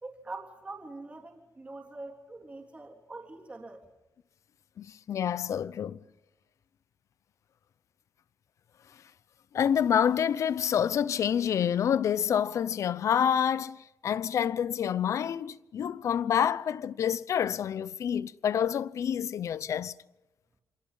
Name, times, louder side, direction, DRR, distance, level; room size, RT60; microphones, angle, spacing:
voice 1, 0.0-3.9, right 2 dB, 20° right, 3.7 m, -44 dB
voice 2, 4.8-6.0 9.5-19.9, left 8 dB, 60° left, 0.8 m, -28 dB
28.0 x 26.5 x 5.7 m
wide cardioid pair, 150°, 6 cm